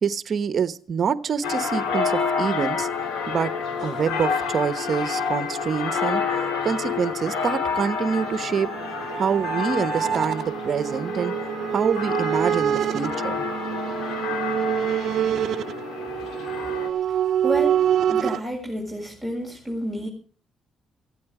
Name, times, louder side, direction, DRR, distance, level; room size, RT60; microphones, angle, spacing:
voice 1, 0.0-2.9 3.3-3.5 3.8-6.2 6.6-8.7 9.2-11.3 11.7-13.4, right 6 dB, 50° right, 12 dB, 1.1 m, -26 dB
sound 1, 1.4-16.9, left 5 dB, 85° left, 3.7 m, -29 dB
sound 2, 1.6-13.0, left 5 dB, 55° left, 2.7 m, -38 dB
sound 3, 7.7-18.4, right 9 dB, 65° right, 0.7 m, -26 dB
voice 2, 16.8-20.1, right 1 dB, 10° left, 0 dB, 7.1 m, -31 dB
17.5 x 16.0 x 4.9 m, 0.42 s
cardioid pair, 90°, 0 cm